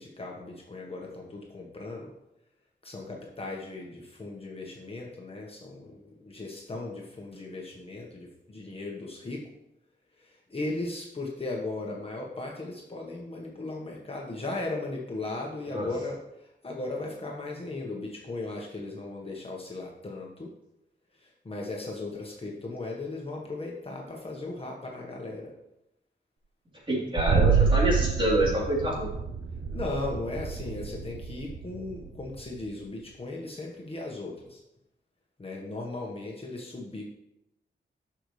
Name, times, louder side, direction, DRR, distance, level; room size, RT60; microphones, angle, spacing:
voice 1, 0.0-2.1 2.8-9.5 10.2-16.2 16.6-20.5 21.2-25.5 29.7-34.6 35.4-37.0, left 2 dB, 30° left, -2 dB, 1.4 m, -37 dB
voice 2, 26.9-29.1, right 1 dB, 25° right, -5 dB, 3.5 m, -26 dB
sound 1, 27.2-32.7, right 6 dB, 80° right, 0.8 m, -27 dB
11.0 x 6.9 x 3.3 m, 0.86 s
wide cardioid pair, 130°, 19 cm